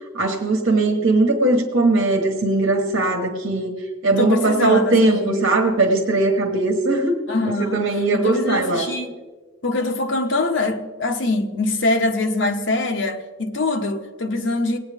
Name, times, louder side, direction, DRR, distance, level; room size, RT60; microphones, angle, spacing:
voice 1, 0.1-3.7 4.0-7.1 7.6-8.9, right 2 dB, 70° right, 1.4 m, -19 dB
voice 2, 4.1-5.5 7.3-7.9 8.1-9.2 9.6-14.8, left 2 dB, 65° left, 1.1 m, -23 dB
19.0 x 9.0 x 3.5 m
head